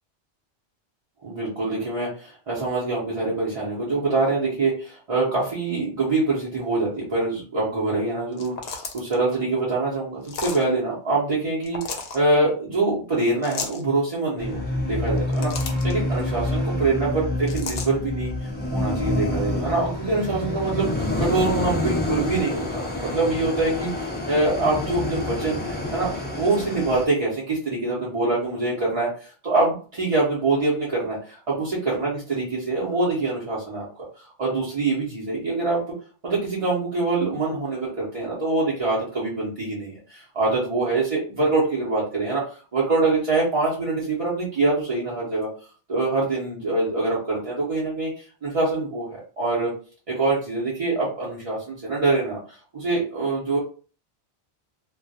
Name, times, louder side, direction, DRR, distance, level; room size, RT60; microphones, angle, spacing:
voice 1, 1.2-35.8 36.2-45.5 45.9-49.7 50.1-52.4 52.7-53.6, right 3 dB, 40° right, -7 dB, 0.7 m, -25 dB
sound 1, 8.3-9.2 10.2-10.6 11.6-12.2 13.4-13.8 15.1-15.9 17.5-17.9, left 5 dB, 75° left, 0.8 m, -33 dB
sound 2, 14.4-27.1, left 2 dB, 15° left, 0.4 m, -27 dB
2.3 x 2.1 x 2.6 m, 0.39 s
omnidirectional pair, 1.1 m